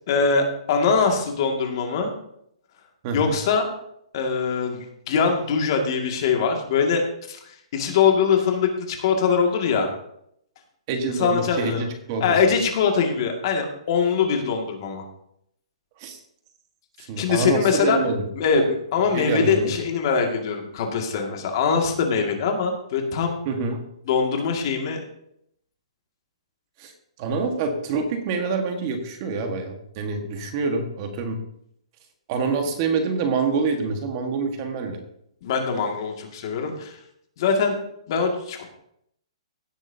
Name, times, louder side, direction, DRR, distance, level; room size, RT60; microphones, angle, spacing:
voice 1, 0.1-2.1 3.1-3.7 4.1-7.4 7.7-9.9 11.2-11.9 12.2-15.0 17.0-18.0 18.4-18.6 18.9-23.4 24.1-25.0 35.4-37.0 37.4-37.8 38.1-38.7, left 5 dB, 45° left, 3 dB, 2.0 m, -22 dB
voice 2, 3.0-3.3 10.9-12.4 16.0-16.2 17.1-18.2 18.6-18.7 19.1-19.7 23.4-23.8 26.8-26.9 27.2-31.4 32.3-35.0, right 4 dB, 35° right, 5 dB, 1.4 m, -26 dB
16.5 x 8.4 x 2.7 m, 0.73 s
hypercardioid pair, 160°, 3 cm